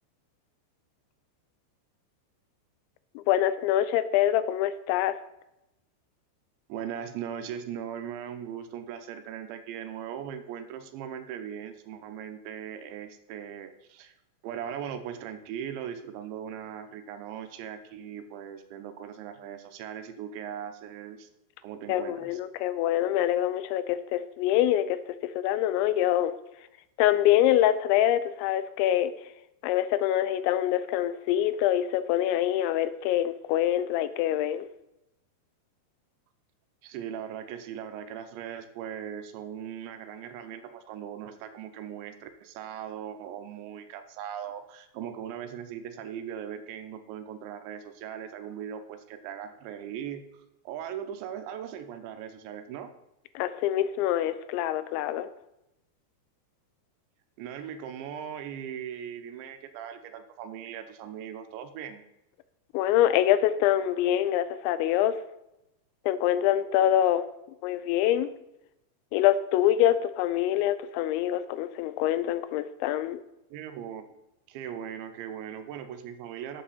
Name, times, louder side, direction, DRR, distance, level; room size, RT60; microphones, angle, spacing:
voice 1, 3.2-5.2 21.9-26.4 27.0-29.1 29.6-34.7 53.4-55.3 62.7-65.2 66.1-67.2 67.6-68.3 69.1-73.2, left 12 dB, 85° left, 14 dB, 3.0 m, -25 dB
voice 2, 6.7-14.1 14.4-21.3 21.6-22.4 36.8-50.2 50.7-52.9 57.4-62.0 73.5-74.2 74.5-76.6, right 9 dB, 90° right, 8 dB, 3.1 m, -39 dB
11.5 x 7.8 x 4.1 m, 0.90 s
omnidirectional pair, 5.2 m